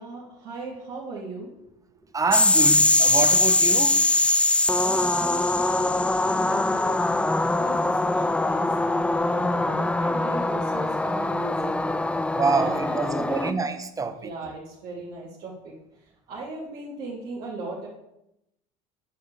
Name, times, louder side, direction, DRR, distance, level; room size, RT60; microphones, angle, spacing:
voice 1, 0.0-1.5 4.7-12.0 12.5-13.6 14.2-15.7 16.3-17.9, right 3 dB, 60° right, 3.3 m, -38 dB
voice 2, 2.1-4.0 12.3-14.3, right 4 dB, 20° right, 1.1 m, -27 dB
sound 1, 2.3-13.5, left 2 dB, 5° left, 0.5 m, -22 dB
9.9 x 5.0 x 7.3 m
supercardioid pair, 95°, 16 cm